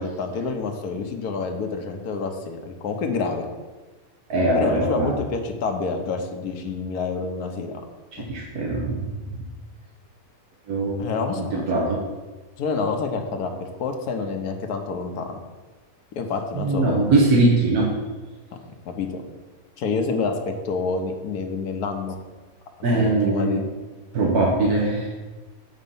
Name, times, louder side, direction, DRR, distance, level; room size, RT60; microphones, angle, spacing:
voice 1, 0.0-3.5 4.5-7.8 8.2-8.3 11.0-11.8 12.6-15.4 16.1-17.1 18.6-19.2 19.8-22.2 22.9-23.6, left 4 dB, 90° left, 4 dB, 1.3 m, -28 dB
voice 2, 4.3-5.1 8.1-9.1 10.7-11.2 11.5-12.0 16.6-17.9 22.8-23.6 24.1-25.1, right 2 dB, 85° right, -3 dB, 1.6 m, -21 dB
7.9 x 4.2 x 5.4 m, 1.3 s
omnidirectional pair, 1.6 m